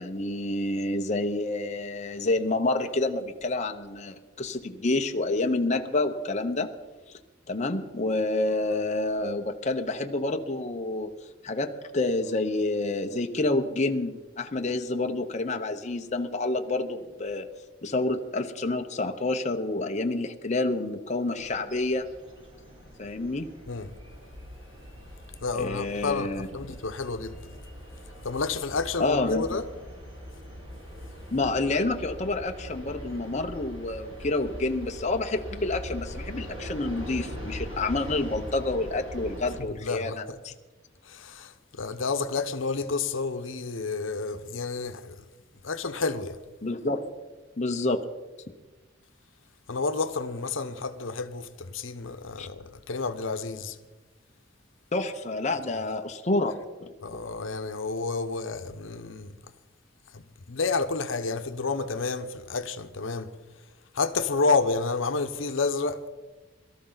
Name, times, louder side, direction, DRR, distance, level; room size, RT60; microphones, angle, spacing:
voice 1, 0.0-6.7 7.1-7.2 7.5-11.1 11.4-17.5 17.8-22.0 23.0-23.5 25.5-26.5 29.0-29.4 31.3-40.5 46.6-47.0 47.6-48.0 52.4-52.5 54.9-56.6 56.8-56.9, left 2 dB, 35° left, 0.8 m, -28 dB
sound 1, 21.4-39.6, equal, 30° right, 4.4 m, -41 dB
voice 2, 25.4-27.5 28.2-29.7 39.6-40.4 41.0-45.2 45.6-46.4 49.7-53.8 57.0-59.3 60.1-63.3 63.9-66.1, left 4 dB, 80° left, 0.9 m, -30 dB
22.5 x 13.0 x 4.0 m
head